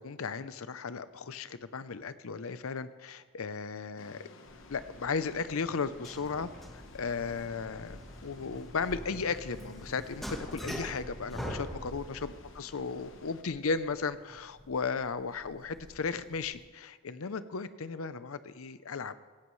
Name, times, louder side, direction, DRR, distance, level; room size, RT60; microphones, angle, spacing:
voice 1, 0.0-4.3 4.7-19.2, left 5 dB, 85° left, 13 dB, 0.6 m, -35 dB
sound 1, 4.0-13.4, left 3 dB, 65° left, 1.0 m, -55 dB
sound 2, 4.4-16.6, equal, ahead, 1.4 m, -45 dB
17.0 x 16.5 x 3.2 m, 1.4 s
head